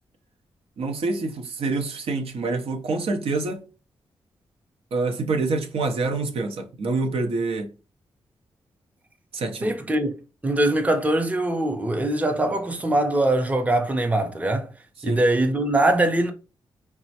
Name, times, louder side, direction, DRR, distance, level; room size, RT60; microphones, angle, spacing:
voice 1, 0.8-3.6 4.9-7.7 9.3-9.7 15.1-15.2, right 3 dB, 70° right, 0.6 m, -26 dB
voice 2, 9.6-10.2 10.4-14.7 15.0-16.3, right 1 dB, 15° right, 0.5 m, -22 dB
3.3 x 2.0 x 2.7 m
cardioid pair, 60°, 10 cm